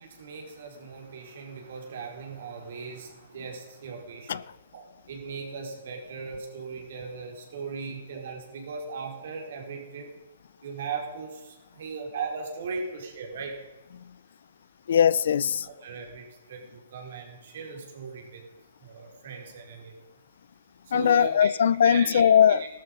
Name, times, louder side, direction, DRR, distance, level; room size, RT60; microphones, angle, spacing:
voice 1, 0.0-4.4 4.7-10.1 10.6-13.6 15.6-18.5 18.8-20.0 20.8-21.5 21.8-22.7, right 5 dB, 60° right, 4.8 m, -38 dB
voice 2, 14.9-15.7 20.9-22.6, left 8 dB, 70° left, 0.5 m, -20 dB
15.5 x 12.5 x 5.5 m
hypercardioid pair, 145°, 0 cm